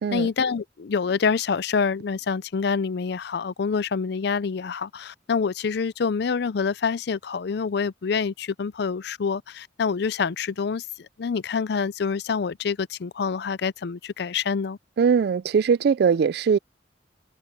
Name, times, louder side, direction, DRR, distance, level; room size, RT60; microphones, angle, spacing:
voice 1, 0.1-10.9 11.2-14.8, left 5 dB, 60° left, 0.4 m, -26 dB
voice 2, 15.0-16.6, right 6 dB, 55° right, 0.3 m, -21 dB
head